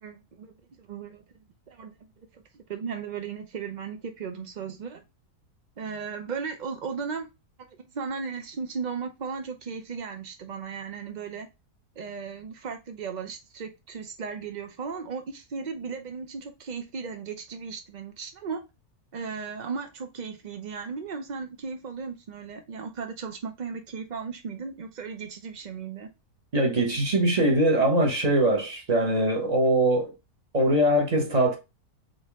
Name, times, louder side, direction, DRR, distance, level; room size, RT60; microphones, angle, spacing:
voice 1, 0.0-1.2 1.7-1.9 2.3-5.0 5.8-7.3 7.7-11.5 12.0-18.6 19.1-26.1, right 5 dB, 65° right, 0.4 m, -36 dB
voice 2, 26.5-30.1 30.5-31.6, right 1 dB, 30° right, 1.1 m, -22 dB
4.0 x 3.5 x 3.6 m
omnidirectional pair, 1.6 m